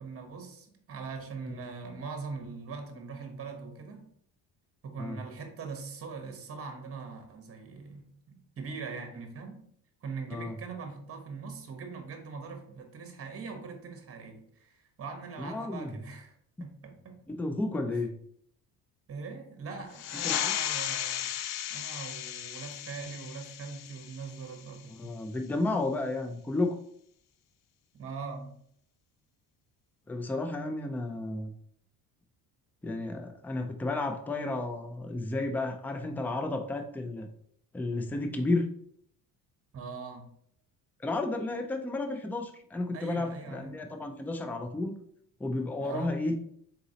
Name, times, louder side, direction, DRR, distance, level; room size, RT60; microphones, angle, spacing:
voice 1, 0.0-4.1 4.8-9.6 10.0-16.3 16.6-17.2 19.1-21.3 21.7-25.1 27.9-28.5 39.7-40.3 42.9-43.7 45.8-46.1, right 4 dB, 35° right, 4 dB, 1.0 m, -41 dB
voice 2, 15.4-15.9 17.3-18.1 20.2-20.5 25.0-26.8 30.1-31.5 32.8-37.3 37.7-38.6 41.0-45.0 45.4-46.4, left 2 dB, 5° left, 6 dB, 0.4 m, -32 dB
sound 1, 19.9-25.0, left 12 dB, 70° left, 0.5 m, -35 dB
4.0 x 3.8 x 2.8 m, 0.66 s
supercardioid pair, 90°, 40 cm